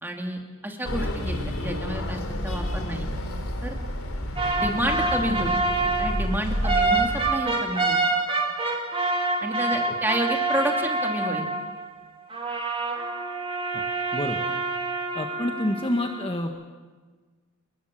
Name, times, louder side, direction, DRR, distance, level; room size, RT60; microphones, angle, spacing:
voice 1, 0.0-3.1 3.6-3.8 4.5-5.6 6.0-8.0 9.4-11.5, equal, 10° right, 2 dB, 2.5 m, -30 dB
sound 1, 0.9-7.3, left 1 dB, 80° left, 3.6 m, -30 dB
sound 2, 4.4-11.9 12.3-16.4, right 3 dB, 25° right, 2.3 m, -27 dB
voice 2, 14.1-14.5 15.1-16.5, left 1 dB, 25° left, 3 dB, 1.5 m, -28 dB
29.5 x 21.0 x 7.6 m, 1.4 s
head